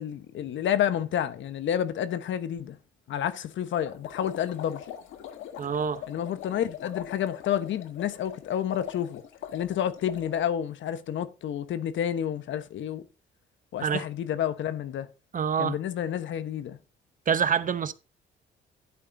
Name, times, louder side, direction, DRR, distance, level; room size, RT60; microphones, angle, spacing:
voice 1, 0.0-2.8 3.1-4.8 6.1-9.2 9.5-13.0 13.7-15.1 15.6-16.8, left 10 dB, 70° left, 1.1 m, -29 dB
sound 1, 3.9-10.3, left 10 dB, 90° left, 1.4 m, -42 dB
voice 2, 5.6-6.0 13.8-14.0 15.3-15.8 17.3-17.9, right 7 dB, 40° right, 0.8 m, -26 dB
11.0 x 8.8 x 2.7 m
cardioid pair, 90°, 20 cm